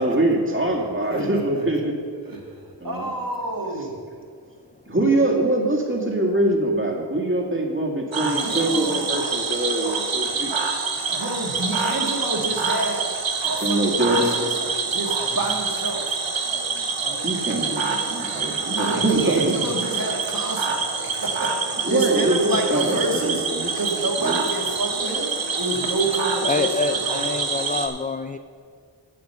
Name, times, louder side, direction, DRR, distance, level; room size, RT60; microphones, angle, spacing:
voice 1, 0.0-2.0 2.8-3.1 4.9-10.5 13.6-14.3 17.2-19.7 21.8-23.7 24.2-24.4, right 1 dB, 25° right, -1 dB, 2.0 m, -23 dB
voice 2, 2.1-2.5 2.8-3.9 8.2-9.2 11.1-13.1 13.5-14.5 14.9-16.1 17.0-17.2 18.6-23.5 23.8-25.3 25.6-27.2, right 2 dB, 50° right, 0 dB, 1.9 m, -28 dB
Cricket / Frog, 8.1-27.9, right 4 dB, 90° right, 1.0 m, -26 dB
voice 3, 26.4-28.4, left 4 dB, 20° left, 8 dB, 0.3 m, -26 dB
8.5 x 7.7 x 6.7 m, 2.1 s
wide cardioid pair, 40°, 44 cm